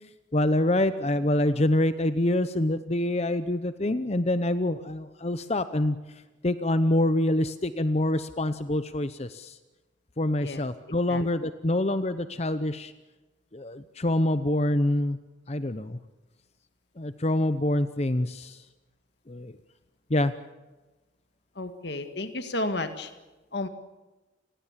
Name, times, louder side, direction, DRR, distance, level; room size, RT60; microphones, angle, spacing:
voice 1, 0.3-6.0 6.4-9.6 10.2-12.9 13.5-15.2 15.5-16.0 17.0-18.6 19.3-19.5 20.1-20.3, left 1 dB, 35° left, 12 dB, 0.8 m, -26 dB
voice 2, 21.6-23.1 23.5-23.7, left 2 dB, 60° left, 8 dB, 1.9 m, -32 dB
29.5 x 20.5 x 7.5 m, 1.1 s
head